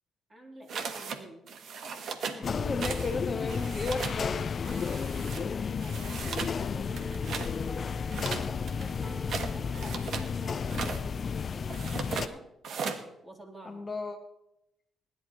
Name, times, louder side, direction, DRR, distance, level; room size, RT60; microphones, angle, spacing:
voice 1, 0.3-1.5 5.3-7.4 8.2-12.4 13.2-13.8, equal, 25° right, 0 dB, 3.8 m, -49 dB
sound 1, 0.7-1.2 1.5-2.4 2.8-3.1 3.4-4.2 4.6-5.4 5.8-6.6 6.9-7.5 8.1-10.3 10.6-11.0 11.7-12.3 12.6-13.0, right 5 dB, 65° right, 1.5 m, -37 dB
voice 2, 2.3-4.4 13.6-14.2, left 3 dB, 30° left, 5 dB, 1.2 m, -34 dB
sound 2, 2.4-12.3, left 6 dB, 45° left, 0.5 m, -33 dB
sound 3, 2.5-12.5, right 1 dB, 5° right, 1.3 m, -49 dB
20.5 x 11.0 x 3.2 m, 0.84 s
cardioid pair, 90°, 0 cm